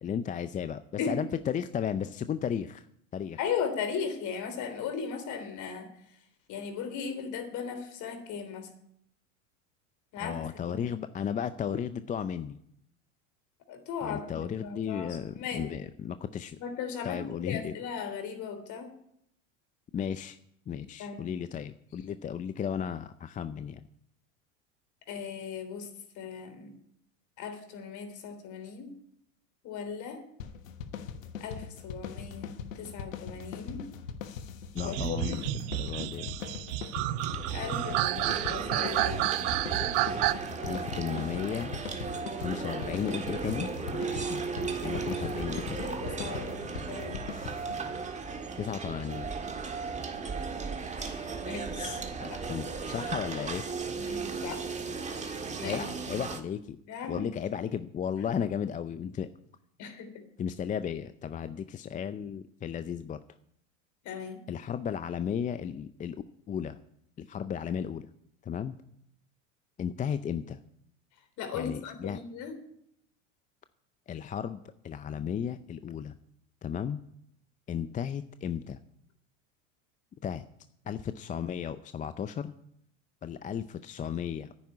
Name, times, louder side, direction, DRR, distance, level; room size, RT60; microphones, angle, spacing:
voice 1, 0.0-2.9 3.1-3.4 10.2-12.6 14.0-16.6 17.0-17.8 19.9-20.4 20.7-23.8 34.7-36.4 40.6-41.8 42.4-45.8 48.6-49.3 52.2-53.6 55.6-56.8 57.1-59.3 60.4-63.2 64.5-66.8 67.2-68.1 68.4-68.8 69.8-70.6 71.5-72.2 74.1-76.2 76.6-77.0 77.7-78.8 80.2-80.4 80.9-82.5 83.2-84.5, left 8 dB, 20° left, 12 dB, 0.5 m, -34 dB
voice 2, 3.4-5.9 6.5-8.7 10.1-10.9 13.7-15.7 16.6-18.9 21.0-21.2 25.1-25.9 26.1-26.7 27.4-28.9 29.6-30.2 31.4-33.8 34.8-35.4 37.5-39.3 44.8-45.0 45.7-47.3 51.0-52.0 54.0-54.6 55.1-56.2 56.9-57.3 59.8-60.1 64.0-64.4 71.4-72.6, left 6 dB, 50° left, 7 dB, 3.6 m, -37 dB
sound 1, 30.4-47.8, left 6 dB, 90° left, 1.3 m, -41 dB
sound 2, 34.8-40.3, right 17 dB, 55° right, 0.7 m, -30 dB
sound 3, 36.9-56.4, right 4 dB, 20° right, 1.7 m, -36 dB
10.0 x 9.7 x 9.5 m, 0.72 s
hypercardioid pair, 105°, 39 cm